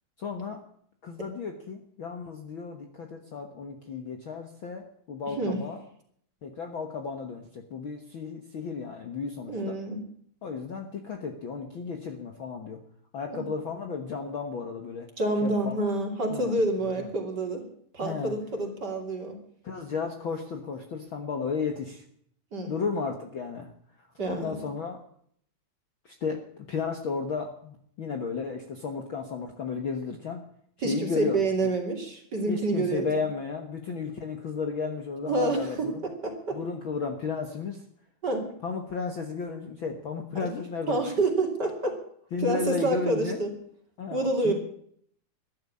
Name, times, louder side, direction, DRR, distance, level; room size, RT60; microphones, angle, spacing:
voice 1, 0.2-0.6 1.0-5.8 6.4-9.8 10.4-12.8 13.1-15.1 15.4-15.8 16.3-16.6 17.0-17.1 18.0-18.3 19.6-22.0 22.7-23.7 24.0-25.0 26.0-30.4 30.8-31.7 32.5-36.1 36.5-37.8 38.6-41.0 42.3-43.4 44.0-44.5, left 5 dB, 85° left, 4 dB, 1.1 m, -34 dB
voice 2, 9.5-10.0 13.3-13.5 15.2-17.6 17.9-19.4 22.5-22.7 24.2-24.6 30.8-33.0 35.3-36.6 38.2-38.5 40.4-40.5 40.9-42.0 42.4-43.5 44.1-44.5, right 2 dB, 30° right, 2 dB, 2.9 m, -28 dB
14.0 x 11.0 x 8.5 m, 0.63 s
omnidirectional pair, 4.5 m